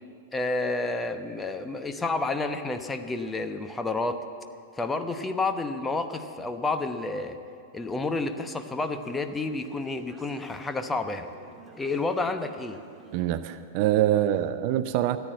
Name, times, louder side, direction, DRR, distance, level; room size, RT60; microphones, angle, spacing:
voice 1, 0.3-4.2 4.8-7.4 7.7-11.3 11.8-12.8, left 3 dB, 10° left, 8 dB, 0.9 m, -30 dB
Conversation / Chatter, 7.8-14.5, right 3 dB, 10° right, 2.4 m, -53 dB
voice 2, 13.1-15.2, right 12 dB, 45° right, 12 dB, 0.5 m, -24 dB
14.0 x 9.2 x 9.0 m, 2.5 s
figure-of-eight pair, 95°, 0 cm